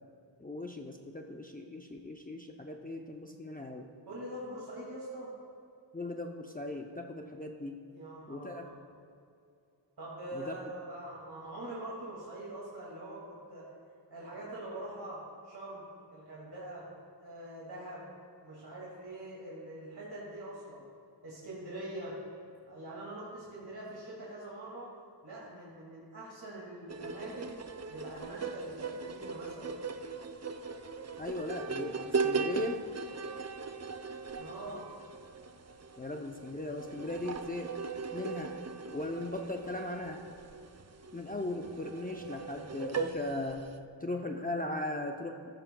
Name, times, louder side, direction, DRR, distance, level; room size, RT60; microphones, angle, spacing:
voice 1, 0.4-3.9 5.9-7.8 8.3-8.7 10.4-10.5 31.2-32.8 36.0-37.7 38.1-38.5 38.9-40.2 41.1-43.6 44.0-45.4, left 2 dB, 20° left, 2 dB, 0.6 m, -38 dB
voice 2, 4.1-5.3 7.2-7.3 7.9-8.7 10.0-13.7 14.1-16.9 17.2-18.1 18.4-20.8 21.2-22.2 22.6-24.9 25.2-27.6 27.9-29.7 34.4-34.9, right 1 dB, 55° right, -6 dB, 2.3 m, -44 dB
sound 1, 26.9-43.8, right 4 dB, 35° right, 0.5 m, -39 dB
14.0 x 13.5 x 2.3 m, 2.5 s
wide cardioid pair, 75°, 45 cm